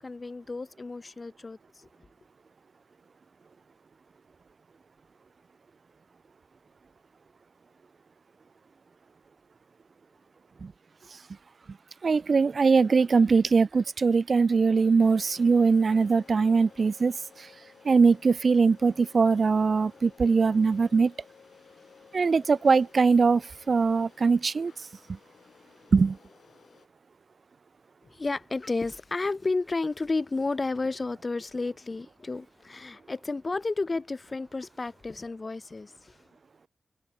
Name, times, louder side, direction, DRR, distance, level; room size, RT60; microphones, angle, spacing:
voice 1, 0.0-1.9 28.0-36.2, left 3 dB, 45° left, 0.8 m, -32 dB
voice 2, 12.0-17.5 17.8-21.1 22.1-24.7 25.1-25.2 25.9-26.2, right 4 dB, 65° right, 0.5 m, -22 dB
sound 1, 15.0-26.9, left 6 dB, 80° left, 2.1 m, -55 dB
cardioid pair, 50°, 0 cm